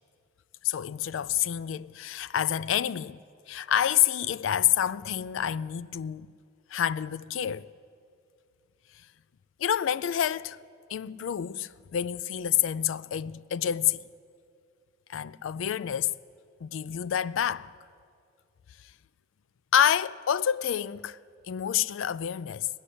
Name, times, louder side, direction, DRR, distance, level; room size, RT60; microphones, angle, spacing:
voice 1, 0.6-3.2 3.5-6.3 6.7-7.7 9.6-10.6 10.9-14.0 15.1-16.2 16.6-17.7 19.7-21.2 21.5-22.7, left 10 dB, 80° left, 0.4 m, -28 dB
18.5 x 6.5 x 10.0 m
head